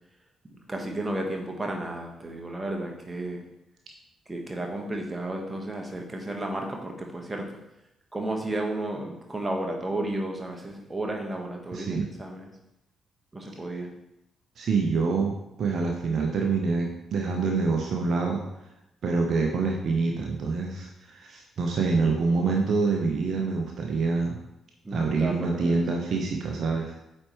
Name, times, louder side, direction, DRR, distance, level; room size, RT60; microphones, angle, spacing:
voice 1, 0.4-3.4 4.3-7.6 8.1-12.5 13.3-13.9 24.8-25.8, right 1 dB, 20° right, 1 dB, 1.4 m, -33 dB
voice 2, 11.7-12.1 14.6-15.3 15.6-18.4 19.0-24.4 24.9-26.9, right 4 dB, 55° right, 1 dB, 0.7 m, -26 dB
8.5 x 4.3 x 3.2 m, 0.88 s
figure-of-eight pair, 40°, 0 cm